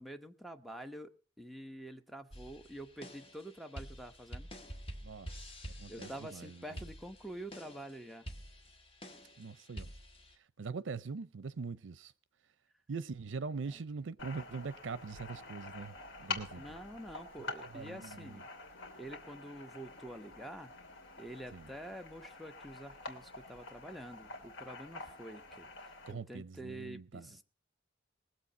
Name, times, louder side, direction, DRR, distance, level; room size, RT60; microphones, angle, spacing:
voice 1, 0.0-4.5 5.9-8.3 13.7-13.8 16.6-18.4 19.0-20.7 21.2-27.4, right 1 dB, ahead, 0.9 m, -47 dB
sound 1, 2.3-10.3, equal, 30° left, 1.8 m, -48 dB
voice 2, 5.0-6.8 9.4-9.9 10.4-12.1 12.9-15.9 16.2-16.8 17.6-18.4 21.5-21.7 26.1-27.3, right 4 dB, 75° right, 0.5 m, -43 dB
sound 2, 14.2-26.1, left 3 dB, 90° left, 2.7 m, -47 dB
20.0 x 7.7 x 5.3 m
head